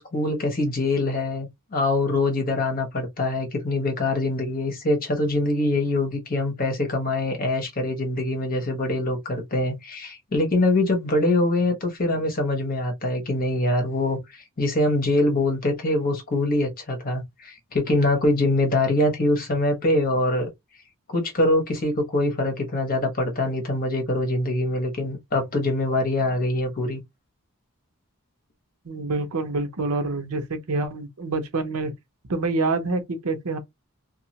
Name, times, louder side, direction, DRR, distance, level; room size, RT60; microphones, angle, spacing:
voice 1, 0.0-20.5 21.1-27.0, left 2 dB, 40° left, 1.1 m, -24 dB
voice 2, 28.9-31.9 32.3-33.6, right 3 dB, 85° right, 0.7 m, -26 dB
2.8 x 2.4 x 2.8 m
head